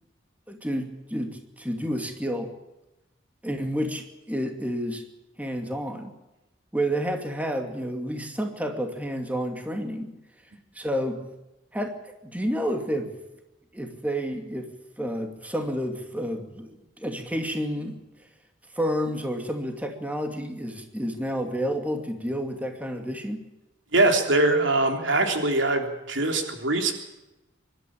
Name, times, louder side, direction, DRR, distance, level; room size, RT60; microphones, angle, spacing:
voice 1, 0.5-2.5 3.4-5.0 5.4-6.1 6.7-10.1 10.7-11.2 11.7-13.1 13.7-14.7 15.0-18.0 18.7-23.4, equal, 10° right, 4 dB, 2.4 m, -30 dB
voice 2, 23.9-26.9, right 2 dB, 85° right, 4 dB, 3.5 m, -22 dB
24.5 x 12.5 x 8.8 m, 0.97 s
head